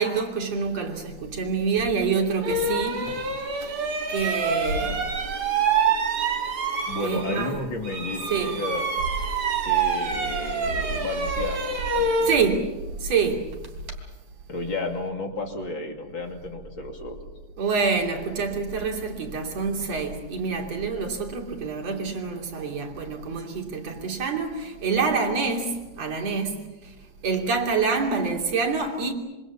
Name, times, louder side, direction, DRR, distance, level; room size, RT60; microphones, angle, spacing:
voice 1, 0.0-3.2 3.6-3.7 4.1-5.1 7.0-7.7 8.3-8.6 12.2-13.5 17.6-26.7 27.2-29.1, right 5 dB, 55° right, 4.0 m, -27 dB
sound 1, 1.8-1.9 2.4-7.6 7.8-14.0, right 4 dB, 70° right, 4.6 m, -26 dB
voice 2, 6.9-8.9 9.6-11.6 11.9-12.4 14.5-17.2, left 2 dB, 40° left, 3.2 m, -32 dB
26.5 x 25.0 x 7.3 m
omnidirectional pair, 3.5 m